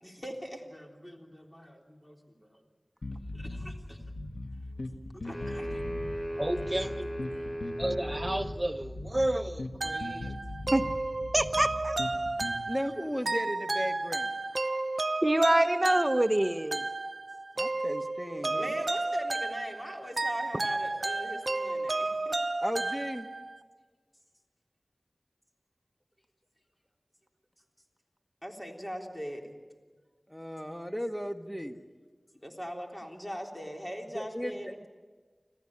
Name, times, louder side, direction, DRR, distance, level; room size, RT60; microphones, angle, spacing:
voice 1, 0.0-2.6 3.3-4.0 5.1-5.8 18.5-22.4 28.4-29.6 32.3-34.8, equal, 20° left, 1 dB, 3.6 m, -41 dB
sound 1, 3.0-12.6, left 2 dB, 85° left, 1.5 m, -40 dB
sound 2, 5.2-8.6, equal, 50° left, 7.9 m, -37 dB
voice 2, 6.4-7.1 7.8-10.3 10.7-10.8 11.3-12.0 15.2-16.8, right 1 dB, 30° right, 9 dB, 1.0 m, -28 dB
sound 3, 9.8-23.6, right 2 dB, 70° right, 0.7 m, -32 dB
voice 3, 12.7-14.3 17.6-18.7 22.6-23.3 30.3-31.8 34.1-34.5, equal, 5° left, 6 dB, 1.5 m, -35 dB
26.5 x 15.0 x 8.7 m, 1.4 s
wide cardioid pair, 45°, 0 cm